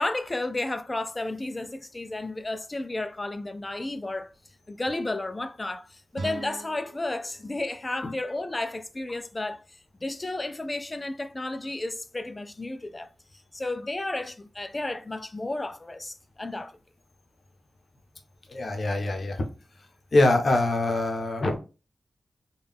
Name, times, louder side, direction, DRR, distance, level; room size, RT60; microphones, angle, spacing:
voice 1, 0.0-4.3 4.7-9.6 10.0-13.1 13.5-16.8, left 2 dB, 25° left, 0.3 m, -32 dB
sound 1, 6.1-9.2, right 3 dB, 75° right, 0.5 m, -42 dB
voice 2, 18.5-19.4 20.1-21.6, left 2 dB, 50° left, 0.7 m, -24 dB
3.6 x 2.3 x 3.4 m
wide cardioid pair, 95°, 0 cm